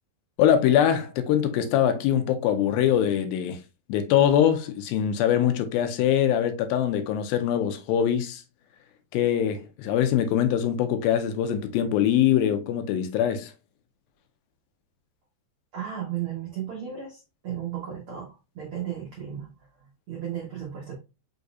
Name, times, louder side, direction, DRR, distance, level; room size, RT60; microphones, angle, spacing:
voice 1, 0.4-3.6 3.9-8.4 9.1-13.5, left 10 dB, 80° left, 2.4 m, -23 dB
voice 2, 15.7-20.9, right 9 dB, 75° right, 1.2 m, -35 dB
5.6 x 4.0 x 2.3 m
omnidirectional pair, 4.2 m